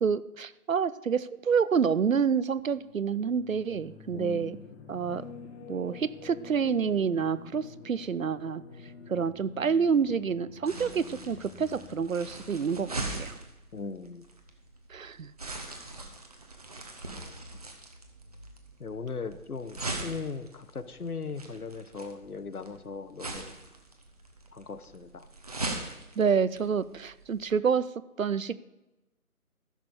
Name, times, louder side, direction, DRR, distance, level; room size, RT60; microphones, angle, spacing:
voice 1, 0.0-4.6 4.9-5.3 5.7-8.6 9.1-13.3 14.9-15.3 26.2-27.9 28.2-28.5, right 6 dB, 65° right, 17 dB, 0.6 m, -28 dB
sound 1, 2.5-12.5, left 5 dB, 50° left, 1.6 m, -48 dB
voice 2, 4.1-4.7 13.7-14.3 18.8-23.6 24.5-25.3, left 4 dB, 80° left, 13 dB, 1.1 m, -38 dB
sound 2, 10.7-27.5, right 2 dB, 25° right, 0.9 m, -41 dB
14.5 x 6.6 x 5.0 m, 0.99 s
figure-of-eight pair, 160°, 44 cm